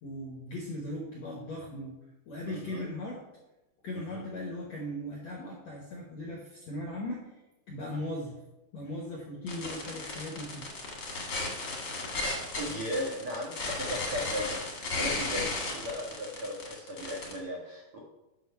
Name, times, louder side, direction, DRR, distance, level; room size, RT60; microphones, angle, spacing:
voice 1, 0.0-2.0 2.3-3.2 3.8-7.3 7.7-8.4 8.7-10.7 11.6-11.8, left 1 dB, 70° left, -1 dB, 1.6 m, -38 dB
voice 2, 2.5-2.9 3.9-4.3 7.9-8.0 12.6-18.0, equal, 70° right, -2 dB, 1.3 m, -37 dB
sound 1, 9.5-17.4, left 2 dB, 45° left, 1.3 m, -35 dB
8.3 x 6.2 x 5.7 m, 1.0 s
omnidirectional pair, 4.9 m